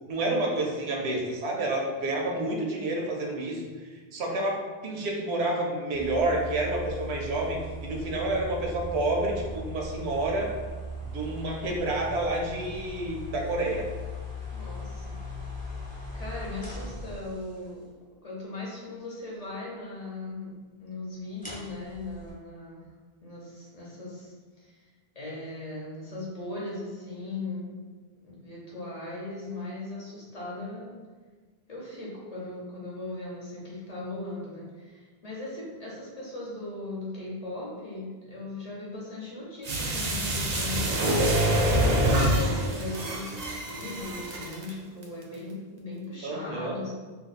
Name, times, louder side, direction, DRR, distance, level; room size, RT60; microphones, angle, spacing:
voice 1, 0.1-3.6 4.1-10.5 11.0-13.9 46.2-46.8, right 2 dB, 85° right, 0 dB, 0.9 m, -29 dB
sound 1, 5.9-17.7 21.4-22.3, equal, 10° left, 0.6 m, -39 dB
voice 2, 14.5-15.0 16.1-17.9 18.2-20.5 20.8-22.8 23.2-24.7 25.1-27.8 28.2-31.0 31.7-42.0 42.2-46.9, left 2 dB, 40° left, -5 dB, 0.8 m, -38 dB
sound 2, 39.6-44.7 45.0-45.1, right 1 dB, 50° right, 0.5 m, -26 dB
2.6 x 2.2 x 4.0 m, 1.4 s
omnidirectional pair, 1.1 m